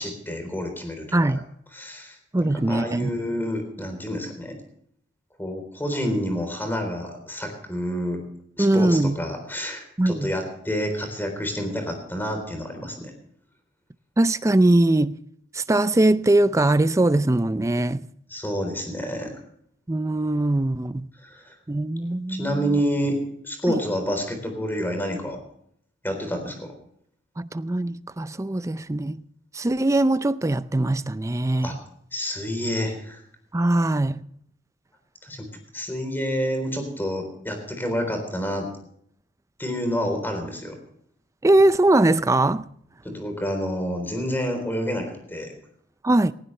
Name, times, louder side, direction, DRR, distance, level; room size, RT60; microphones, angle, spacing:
voice 1, 0.0-1.3 1.7-4.5 5.4-8.2 8.6-13.1 18.3-19.3 21.2-21.6 22.3-23.2 23.4-25.4 26.0-26.7 31.6-31.8 32.1-33.2 35.2-35.5 35.7-38.7 39.6-40.8 43.0-45.5, equal, 10° left, 3.8 m, -28 dB
voice 2, 2.3-3.1 8.6-9.2 10.0-10.3 14.2-15.2 15.5-18.1 19.9-21.1 21.7-22.8 23.7-23.8 27.4-29.2 29.5-31.8 33.5-34.2 41.4-42.7 46.0-46.3, right 1 dB, 15° right, 0.5 m, -21 dB
18.5 x 16.0 x 3.3 m
head